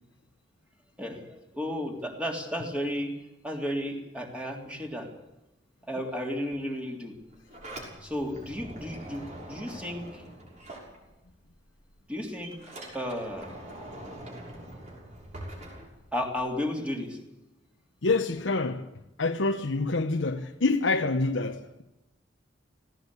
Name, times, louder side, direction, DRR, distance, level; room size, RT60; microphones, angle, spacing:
voice 1, 1.0-3.1 3.4-5.1 5.9-7.2 8.0-10.2 12.1-13.6 16.1-17.2, equal, 5° right, 3.4 m, -33 dB
Sliding door, 7.2-11.5 11.8-16.5, right 1 dB, 40° right, 6.4 m, -44 dB
voice 2, 18.0-18.9 19.2-21.8, left 3 dB, 85° left, 1.0 m, -27 dB
19.0 x 17.0 x 8.5 m
head